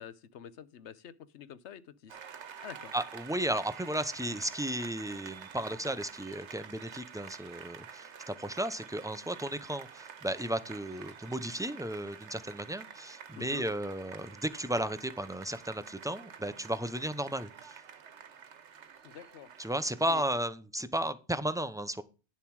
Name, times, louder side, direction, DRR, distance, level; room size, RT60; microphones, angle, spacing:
voice 1, 0.0-2.2 2.6-2.9 13.4-13.7 19.0-19.5 20.1-20.2, left 9 dB, 85° left, 1.1 m, -47 dB
Applause, 2.1-20.4, right 7 dB, 80° right, 1.2 m, -49 dB
voice 2, 2.9-17.8 19.6-22.0, right 1 dB, 5° right, 0.5 m, -34 dB
10.0 x 7.2 x 4.7 m
omnidirectional pair, 1.1 m